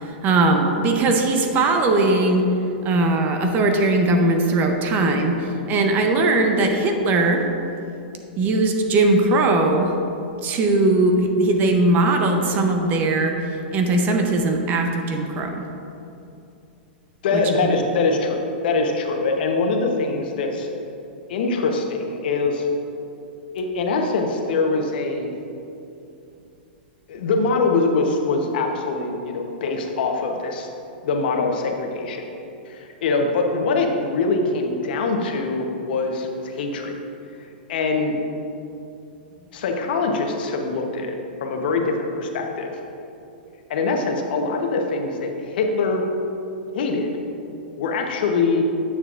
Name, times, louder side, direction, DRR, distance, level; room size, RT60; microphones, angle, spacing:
voice 1, 0.0-2.5 2.8-7.4 8.4-9.9 10.4-15.7 17.3-17.4, right 2 dB, 35° right, 4 dB, 0.7 m, -19 dB
voice 2, 17.2-20.7 21.3-22.7 23.5-25.3 27.1-30.7 31.0-32.3 32.7-36.9 37.7-38.1 39.5-42.8 43.7-46.0 46.7-47.2 47.8-48.6, left 3 dB, 65° left, 3 dB, 0.9 m, -23 dB
9.2 x 6.7 x 2.5 m, 2.7 s
hypercardioid pair, 120°, 6 cm